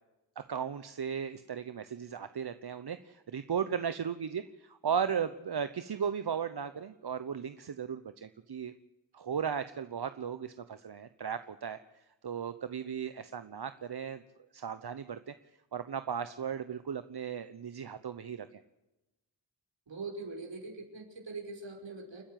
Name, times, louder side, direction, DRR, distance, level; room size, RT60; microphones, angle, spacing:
voice 1, 0.4-8.7 9.1-11.8 12.2-14.2 14.5-15.3 15.7-18.6, right 7 dB, 60° right, 11 dB, 1.0 m, -36 dB
voice 2, 19.9-22.2, right 3 dB, 75° right, 0 dB, 5.7 m, -42 dB
29.5 x 10.0 x 9.3 m, 0.99 s
cardioid pair, 50°, 45 cm